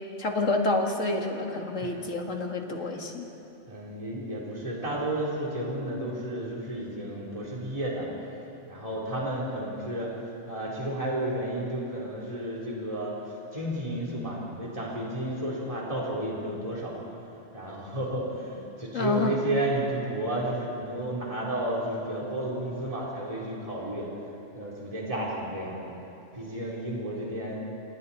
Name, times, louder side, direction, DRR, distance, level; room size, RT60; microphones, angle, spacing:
voice 1, 0.2-3.3 18.9-19.4, left 3 dB, 70° left, 2 dB, 2.4 m, -28 dB
voice 2, 3.7-8.1 8.7-10.1 10.5-17.2 17.5-24.1 24.5-25.8 26.3-27.6, right 1 dB, 25° right, -5 dB, 3.8 m, -32 dB
28.5 x 27.5 x 4.3 m, 2.8 s
omnidirectional pair, 1.3 m